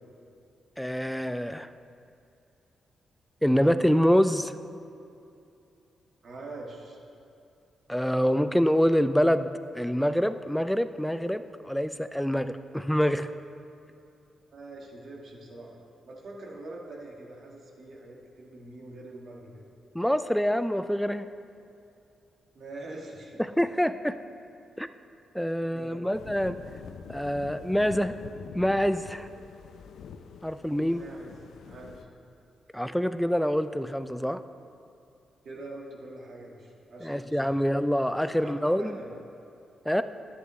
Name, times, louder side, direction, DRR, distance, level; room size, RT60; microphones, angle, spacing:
voice 1, 0.8-1.7 3.4-4.5 7.9-9.5 9.7-13.3 19.9-21.3 23.4-24.2 24.8-24.9 25.3-26.6 27.1-28.2 28.5-29.3 30.4-31.0 32.7-34.4 37.0-39.0 39.9-40.0, equal, 5° left, 12 dB, 0.4 m, -26 dB
voice 2, 6.2-7.0 14.5-15.8 16.1-19.6 22.5-23.4 25.5-26.1 30.7-32.1 35.4-37.6 38.2-38.5 38.8-39.1, right 2 dB, 65° right, -2 dB, 1.6 m, -44 dB
sound 1, 26.1-32.0, left 6 dB, 80° left, 0.4 m, -45 dB
10.5 x 8.2 x 3.1 m, 2.7 s
cardioid pair, 65°, 0 cm